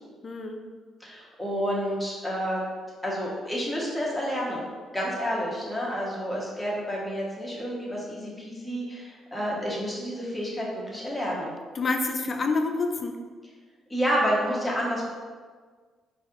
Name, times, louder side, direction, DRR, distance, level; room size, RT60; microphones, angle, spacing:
voice 1, 0.2-0.6 11.7-13.2, left 3 dB, 40° left, 5 dB, 0.4 m, -27 dB
voice 2, 1.0-2.7 3.0-4.7 4.9-11.5 13.9-15.0, equal, 5° left, -5 dB, 1.0 m, -29 dB
4.2 x 2.6 x 2.5 m, 1.5 s
cardioid pair, 90°, 0 cm